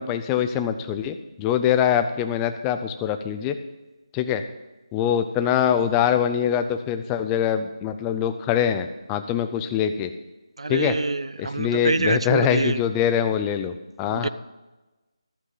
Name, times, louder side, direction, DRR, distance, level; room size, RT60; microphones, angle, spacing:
voice 1, 0.0-3.6 4.1-4.4 4.9-10.1 10.7-11.0 11.4-14.3, left 9 dB, 10° left, 0.4 m, -23 dB
voice 2, 10.6-12.8 14.1-14.3, right 3 dB, 75° right, 0.5 m, -25 dB
14.5 x 13.0 x 3.9 m
figure-of-eight pair, 170°, 3 cm